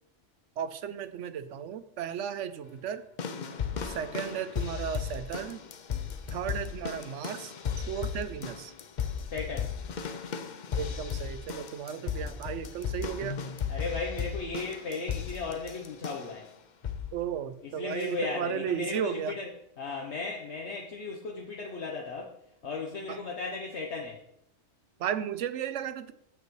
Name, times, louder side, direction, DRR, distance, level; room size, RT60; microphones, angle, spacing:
voice 1, 0.6-3.0 3.8-5.6 6.3-8.7 10.8-13.4 17.1-19.4 23.1-23.2 25.0-26.1, right 9 dB, 80° right, 13 dB, 1.0 m, -35 dB
sound 1, 3.2-16.4 16.8-17.2 18.0-18.1, left 7 dB, 50° left, 0.6 m, -36 dB
voice 2, 9.3-9.7 12.2-12.3 13.7-16.5 17.6-19.5 19.8-22.4 22.6-24.2, left 4 dB, 65° left, 1 dB, 1.2 m, -36 dB
15.0 x 5.4 x 3.1 m, 0.77 s
omnidirectional pair, 1.2 m